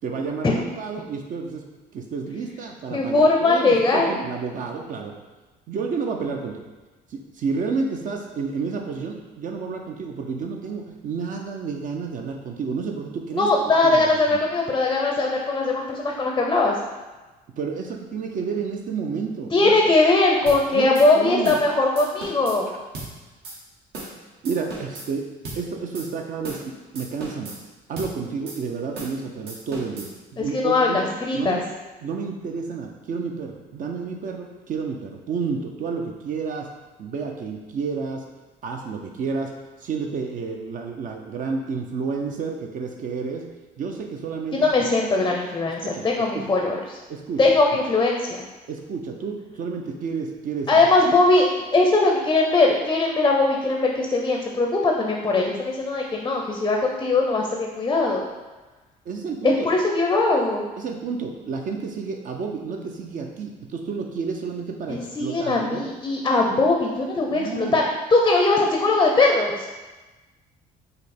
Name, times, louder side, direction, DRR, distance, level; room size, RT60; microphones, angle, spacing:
voice 1, 0.0-1.6 1.9-5.1 5.7-6.7 7.1-13.5 13.8-14.4 17.6-19.8 20.7-20.9 21.1-21.6 22.7-22.8 24.4-25.3 25.5-27.6 27.9-31.0 31.3-31.7 32.0-36.7 37.0-38.2 38.6-39.5 39.8-43.4 43.8-44.7 45.2-45.4 45.7-46.1 46.3-46.5 47.1-47.6 48.7-50.9 59.1-59.7 60.8-65.9 66.5-66.6 67.3-67.8, right 5 dB, 50° right, 2 dB, 0.5 m, -30 dB
voice 2, 2.9-4.2 13.4-16.8 19.5-22.7 30.4-31.6 44.5-47.0 47.4-48.4 50.7-51.5 51.7-58.3 59.4-60.7 64.9-67.8 68.1-69.7, left 3 dB, 20° left, 0 dB, 0.5 m, -20 dB
sound 1, 20.5-20.6 20.9-21.1 21.4-21.7 22.0-22.6 22.9-23.1 23.4-23.6 23.9-24.2 24.4-25.1 25.4-25.6 25.9-26.1 26.4-26.7 26.9-27.6 28.0-28.1 28.5-28.6 28.9-29.2 29.5-30.1, right 2 dB, 70° right, 1.2 m, -36 dB
5.2 x 2.0 x 4.2 m, 1.2 s
cardioid pair, 110°, 17 cm